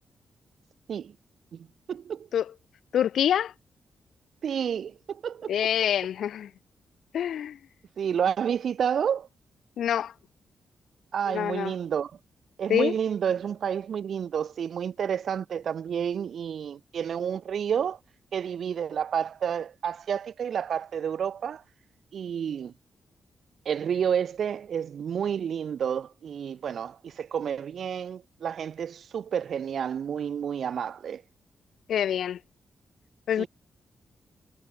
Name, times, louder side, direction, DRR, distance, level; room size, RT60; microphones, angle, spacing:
voice 1, 1.5-2.3 4.4-5.5 8.0-9.3 11.1-12.1 12.6-18.0 18.3-21.6 22.1-22.7 23.6-31.2 33.4-33.5, right 8 dB, 60° right, 6.7 m, -30 dB
voice 2, 2.9-3.5 5.5-6.5 7.1-7.6 9.8-10.1 11.3-11.7 12.7-12.9 31.9-32.4 33.3-33.4, left 9 dB, 80° left, 1.6 m, -26 dB
wide cardioid pair, 155°, 0 cm